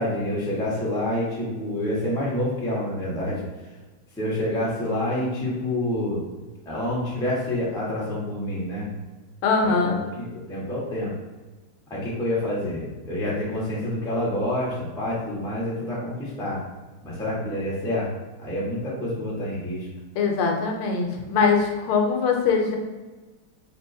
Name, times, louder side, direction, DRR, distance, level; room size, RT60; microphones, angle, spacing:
voice 1, 0.0-3.4 4.2-6.2 6.6-8.9 9.6-11.1 11.9-16.6 17.0-18.1 18.4-19.9, left 1 dB, 5° left, -7 dB, 0.4 m, -27 dB
voice 2, 9.4-10.0 20.1-22.8, left 5 dB, 80° left, 2 dB, 1.4 m, -22 dB
5.4 x 2.9 x 2.6 m, 1.2 s
omnidirectional pair, 2.4 m